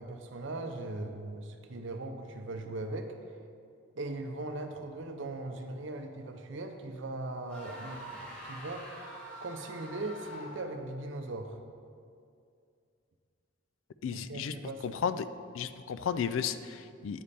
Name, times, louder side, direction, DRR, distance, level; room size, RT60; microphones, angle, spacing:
voice 1, 0.0-3.1 4.0-8.8 9.4-11.6 14.1-14.8, right 2 dB, 65° right, 5 dB, 0.6 m, -39 dB
sound 1, 7.5-10.8, right 1 dB, 5° left, 1.4 m, -45 dB
voice 2, 14.0-14.6 14.8-15.3 15.5-17.2, left 7 dB, 75° left, 13 dB, 0.3 m, -33 dB
8.6 x 5.2 x 4.2 m, 2.4 s
head